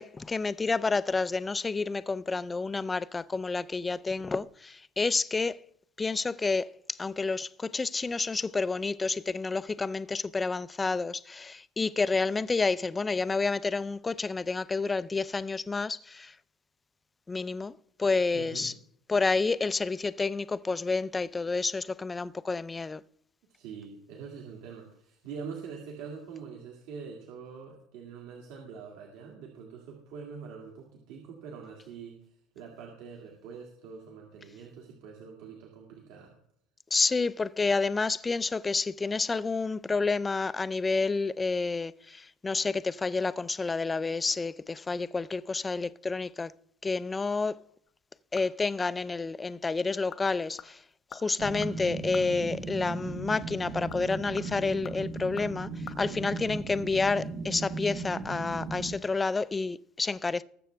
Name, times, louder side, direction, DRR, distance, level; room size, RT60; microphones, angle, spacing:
voice 1, 0.0-5.6 6.0-16.3 17.3-18.7 19.1-23.0 36.9-46.5 46.8-47.6 48.3-50.8 51.1-55.7 56.0-60.4, left 4 dB, 10° left, 0.3 m, -29 dB
voice 2, 18.3-18.7 23.5-36.4 56.0-56.4, right 6 dB, 65° right, 2.2 m, -44 dB
sound 1, 47.9-48.8 49.1-49.2 49.8-50.3 50.6-52.3 53.6-56.0 56.2-56.3, left 8 dB, 30° left, 0.7 m, -47 dB
sound 2, 51.4-59.0, right 3 dB, 30° right, 1.1 m, -37 dB
20.0 x 7.6 x 3.4 m
cardioid pair, 170°, 0 cm